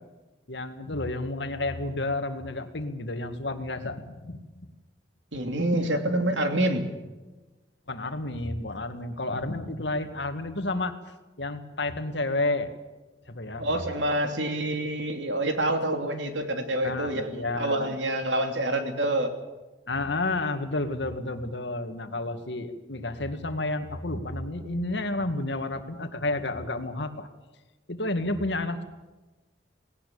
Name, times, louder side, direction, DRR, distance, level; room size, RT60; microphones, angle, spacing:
voice 1, 0.5-4.4 7.9-10.9 11.4-12.7 13.3-13.7 16.8-18.0 19.9-27.3 27.9-28.8, left 2 dB, 70° left, 8 dB, 2.1 m, -31 dB
voice 2, 5.3-6.9 13.6-19.4, right 1 dB, 85° right, 6 dB, 2.8 m, -27 dB
19.0 x 17.5 x 8.5 m, 1.2 s
head